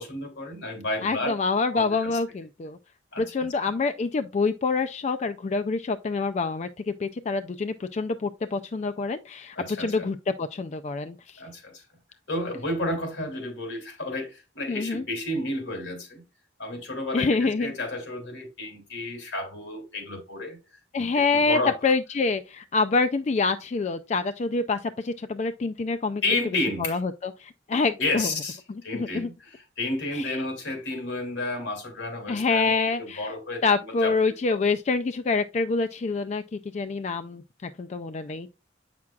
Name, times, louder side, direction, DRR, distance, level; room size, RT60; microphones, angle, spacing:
voice 1, 0.0-1.4 1.7-2.2 3.1-3.7 9.5-10.1 11.4-11.8 12.3-16.2 16.6-21.7 26.2-27.0 28.0-34.1 34.5-34.7, left 2 dB, 75° left, 2.7 m, -32 dB
voice 2, 1.0-2.8 3.2-11.4 14.7-15.0 17.1-17.7 20.9-26.2 26.8-28.3 28.7-29.3 30.1-30.4 32.3-33.3 33.6-38.5, left 4 dB, 35° left, 0.3 m, -26 dB
8.5 x 5.9 x 2.3 m
head